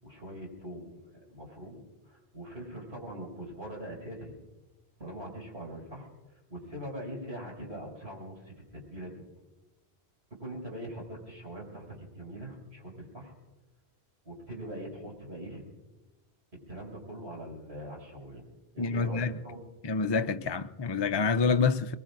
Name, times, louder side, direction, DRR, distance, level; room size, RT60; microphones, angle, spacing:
voice 1, 0.0-4.3 5.0-6.1 6.5-9.2 10.4-13.3 14.2-15.6 16.7-18.4 18.7-19.6, right 1 dB, 70° right, 6.2 m, -42 dB
voice 2, 18.8-19.4 19.8-22.0, left 5 dB, 40° left, 0.4 m, -27 dB
26.0 x 21.5 x 2.6 m
omnidirectional pair, 1.1 m